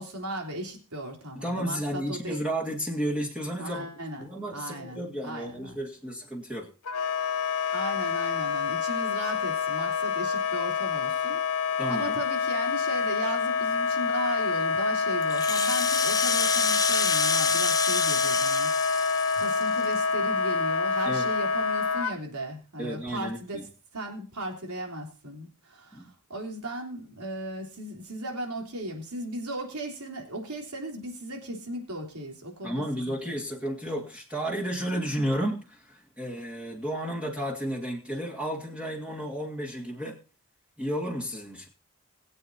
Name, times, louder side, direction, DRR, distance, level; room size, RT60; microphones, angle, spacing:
voice 1, 0.0-2.4 3.6-4.3 4.5-5.8 7.7-11.4 11.9-19.0 19.3-33.4, right 1 dB, 85° right, 2 dB, 3.4 m, -36 dB
voice 2, 1.4-3.9 4.2-6.7 11.8-12.2 21.1-21.3 22.8-23.6 25.9-26.1 32.6-40.2 40.8-41.7, equal, 5° right, -2 dB, 2.1 m, -32 dB
Wind instrument woodwind instrument, 6.9-22.1, left 5 dB, 90° left, 1.0 m, -27 dB
Rattle (instrument), 15.2-20.0, left 5 dB, 15° left, 0.7 m, -28 dB
21.5 x 8.3 x 2.8 m, 0.35 s
head